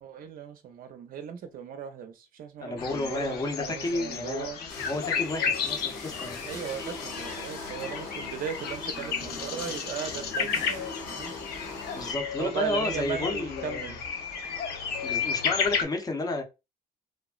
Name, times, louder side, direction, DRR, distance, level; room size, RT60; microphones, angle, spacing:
voice 1, 0.0-4.6 6.4-11.3 12.4-14.0, right 8 dB, 60° right, 0.6 m, -37 dB
voice 2, 2.6-6.4 6.8-6.9 11.9-14.0 15.0-16.4, left 2 dB, 20° left, 0.7 m, -32 dB
sound 1, 2.8-15.8, left 6 dB, 70° left, 0.6 m, -33 dB
sound 2, 4.7-12.1, left 3 dB, 85° left, 1.7 m, -40 dB
3.4 x 2.0 x 2.3 m
cardioid pair, 110°, 17 cm